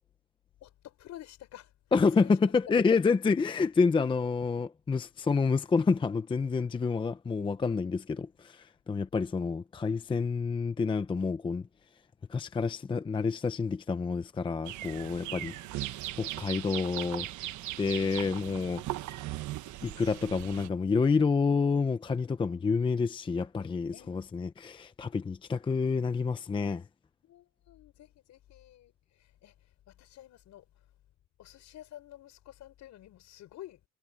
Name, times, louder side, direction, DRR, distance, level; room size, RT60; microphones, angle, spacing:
voice 1, 0.6-1.7 2.1-2.5 15.1-15.8 23.9-24.3 27.2-30.9 31.4-33.8, left 13 dB, 60° left, 6.1 m, -51 dB
voice 2, 1.9-11.7 12.3-15.5 16.2-17.3 17.8-18.8 19.8-26.8, left 4 dB, 15° left, 0.6 m, -28 dB
sound 1, 14.7-20.7, right 15 dB, 65° right, 1.2 m, -38 dB
cardioid pair, 150°, 32 cm